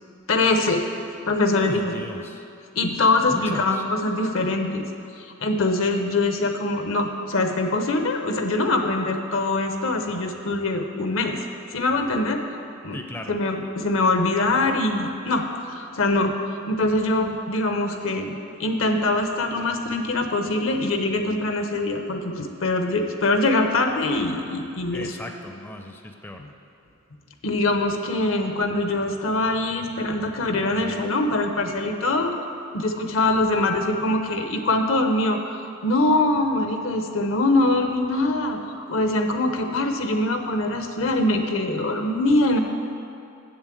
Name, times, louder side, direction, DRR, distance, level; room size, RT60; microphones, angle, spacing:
voice 1, 0.3-0.8 1.3-2.0 2.8-4.9 5.2-11.4 11.7-12.4 12.8-13.0 13.3-16.3 16.7-25.2 26.4-26.5 27.4-32.3 32.7-42.6, left 2 dB, 70° left, 5 dB, 0.9 m, -23 dB
voice 2, 1.5-2.4 3.3-3.8 12.9-13.3 24.9-26.4, left 1 dB, 10° left, 3 dB, 0.4 m, -36 dB
7.6 x 7.3 x 7.6 m, 2.6 s
head